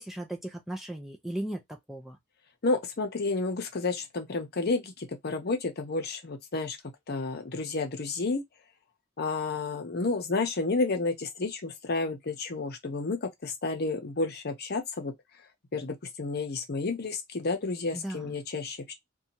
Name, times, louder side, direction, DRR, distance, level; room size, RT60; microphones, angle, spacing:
voice 1, 0.0-2.2 17.9-18.4, right 1 dB, ahead, 0.4 m, -37 dB
voice 2, 2.6-6.8 7.1-8.4 9.2-15.1 15.7-18.9, left 3 dB, 55° left, 0.8 m, -31 dB
2.8 x 2.3 x 2.8 m
head